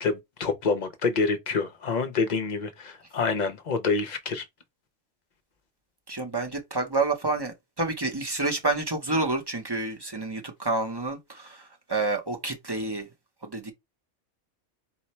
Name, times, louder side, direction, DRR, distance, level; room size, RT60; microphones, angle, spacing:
voice 1, 0.0-4.5, left 4 dB, 50° left, 0.6 m, -27 dB
voice 2, 6.1-13.1 13.4-13.7, right 2 dB, 25° right, 0.7 m, -29 dB
4.4 x 2.1 x 4.2 m
omnidirectional pair, 1.2 m